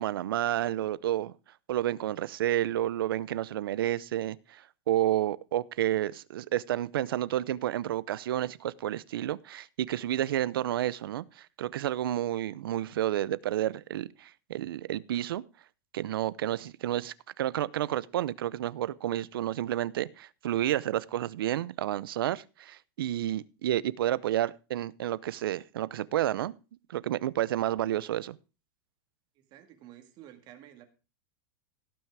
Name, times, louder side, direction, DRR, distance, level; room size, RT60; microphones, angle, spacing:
voice 1, 0.0-1.3 1.7-15.4 15.9-26.5 26.9-28.4, right 12 dB, 85° right, 0.7 m, -30 dB
voice 2, 29.4-30.9, right 12 dB, 35° right, 2.0 m, -51 dB
17.0 x 6.2 x 4.7 m
supercardioid pair, 150°, 12 cm